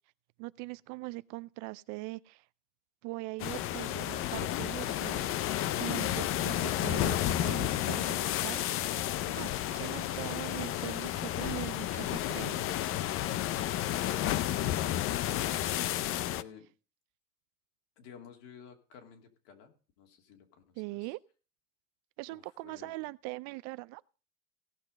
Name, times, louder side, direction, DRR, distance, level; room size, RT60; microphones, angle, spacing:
voice 1, 0.4-2.4 3.0-5.3 5.8-8.2 8.4-9.0 9.3-12.6 20.8-21.2 22.2-24.0, right 23 dB, 50° right, 0.4 m, -41 dB
sound 1, 3.4-16.4, left 13 dB, 35° left, 0.5 m, -32 dB
voice 2, 15.8-16.7 18.0-21.2 22.3-23.1, left 7 dB, 65° left, 2.9 m, -54 dB
16.5 x 6.0 x 5.3 m
supercardioid pair, 125°, 37 cm